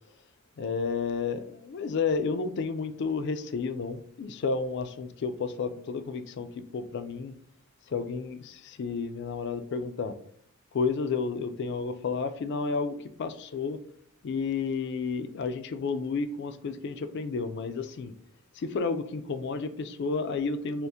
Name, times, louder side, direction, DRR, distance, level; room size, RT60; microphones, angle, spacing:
voice 1, 0.6-7.3 7.9-10.2 10.7-13.8 14.2-18.1 18.5-20.9, left 4 dB, 50° left, 10 dB, 0.3 m, -31 dB
3.5 x 2.4 x 2.7 m, 0.67 s
head